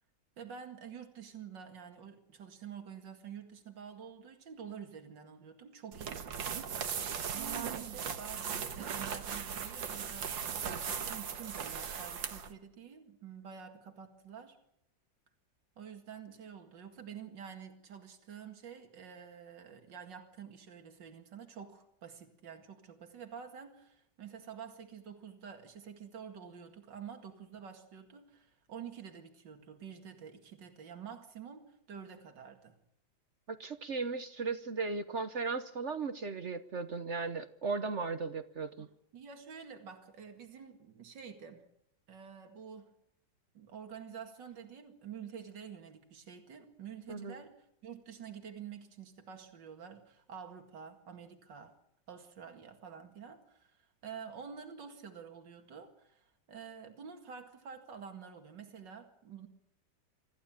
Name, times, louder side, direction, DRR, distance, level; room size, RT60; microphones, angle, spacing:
voice 1, 0.4-6.5 7.3-14.6 15.8-32.7 38.8-38.9 39.1-41.6 42.1-42.9 43.5-51.7 52.1-59.5, right 7 dB, 75° right, 5 dB, 2.7 m, -48 dB
sound 1, 5.9-12.5, right 7 dB, 90° right, 2.2 m, -38 dB
voice 2, 33.5-38.9 47.1-47.4, right 4 dB, 45° right, 11 dB, 1.1 m, -36 dB
26.0 x 14.5 x 8.8 m, 0.77 s
omnidirectional pair, 2.0 m